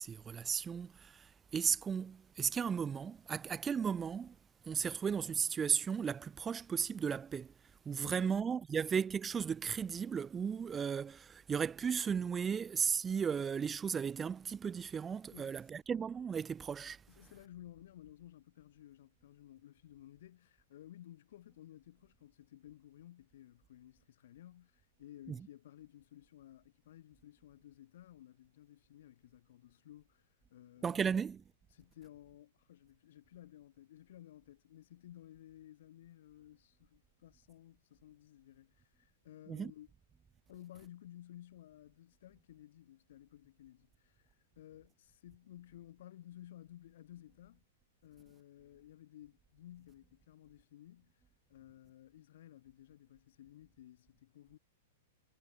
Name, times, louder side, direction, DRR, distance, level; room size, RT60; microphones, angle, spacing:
voice 1, 0.0-4.3 4.6-7.5 7.8-17.0 25.3-25.4 30.8-31.4 39.5-39.7, right 7 dB, 20° right, 1.5 m, -35 dB
voice 2, 8.0-8.4 15.3-15.7 17.1-31.0 31.7-39.9 40.5-47.7 48.0-51.2 51.5-54.6, left 12 dB, 60° left, 8.0 m, -56 dB
hypercardioid pair, 105°, 0 cm